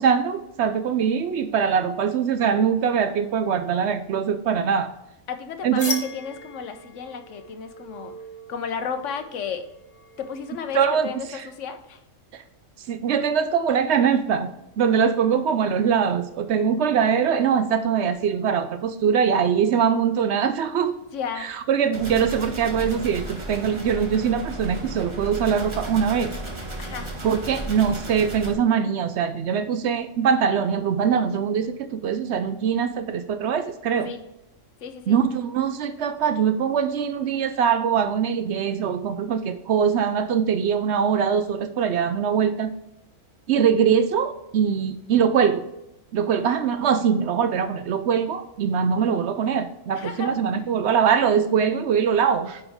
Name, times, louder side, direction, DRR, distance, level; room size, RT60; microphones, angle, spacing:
voice 1, 0.0-4.9 5.6-6.0 10.7-11.5 12.3-12.4 12.9-20.9 21.4-26.3 27.2-34.1 35.1-42.7 43.5-45.7 46.1-52.6, right 7 dB, 65° right, 11 dB, 0.8 m, -22 dB
voice 2, 5.3-8.1 8.5-9.6 10.2-12.0 21.1-21.5 26.8-27.1 34.0-34.2 34.8-35.2 49.9-50.3, left 6 dB, 70° left, 8 dB, 1.1 m, -33 dB
sound 1, 5.8-11.3, left 3 dB, 45° left, 1.3 m, -38 dB
sound 2, 21.9-28.5, right 1 dB, 25° right, 1.3 m, -34 dB
9.6 x 4.6 x 3.5 m, 0.90 s
omnidirectional pair, 1.3 m